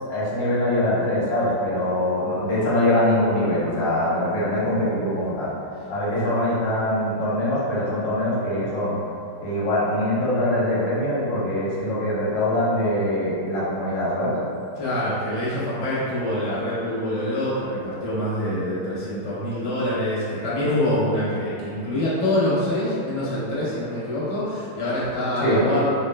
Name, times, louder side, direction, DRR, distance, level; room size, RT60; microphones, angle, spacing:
voice 1, 0.1-5.5 5.9-8.9 9.4-14.3 25.4-25.6, left 1 dB, 65° left, -8 dB, 1.5 m, -23 dB
voice 2, 14.8-25.9, left 1 dB, 85° left, -11 dB, 0.3 m, -25 dB
4.0 x 3.5 x 2.2 m, 2.5 s
omnidirectional pair, 2.4 m